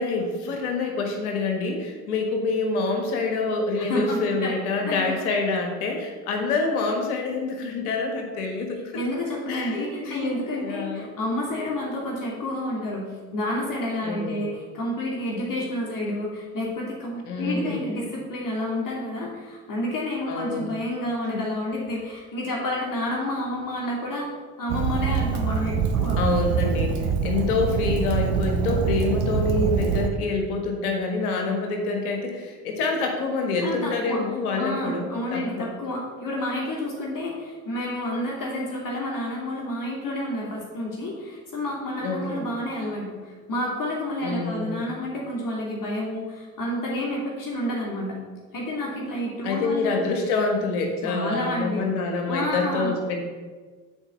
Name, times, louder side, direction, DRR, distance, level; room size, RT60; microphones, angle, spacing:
voice 1, 0.0-9.0 9.5-10.3 10.6-11.1 14.0-14.4 17.3-17.8 20.3-20.7 21.3-21.4 26.2-35.7 42.0-42.5 44.2-44.8 49.4-53.2, left 3 dB, 80° left, 3 dB, 1.6 m, -26 dB
voice 2, 3.8-4.5 4.8-5.1 8.9-24.3 24.6-26.2 33.6-34.2 34.5-48.2 48.5-49.9 51.0-51.9 52.3-53.0, left 1 dB, 45° left, -3 dB, 2.8 m, -29 dB
Fire, 24.7-30.1, right 6 dB, 80° right, 0.9 m, -24 dB
7.9 x 4.7 x 7.2 m, 1.4 s
hypercardioid pair, 55°, 44 cm